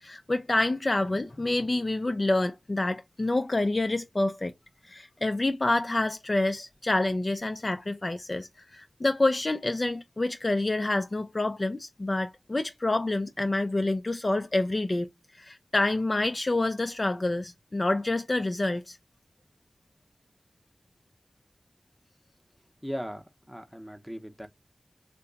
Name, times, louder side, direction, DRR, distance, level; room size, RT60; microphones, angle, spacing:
voice 1, 0.0-4.5 4.9-15.1 15.4-19.0, left 2 dB, 35° left, 0.4 m, -27 dB
voice 2, 22.8-24.5, equal, ahead, 0.7 m, -38 dB
2.8 x 2.1 x 3.9 m
wide cardioid pair, 75°, 0 cm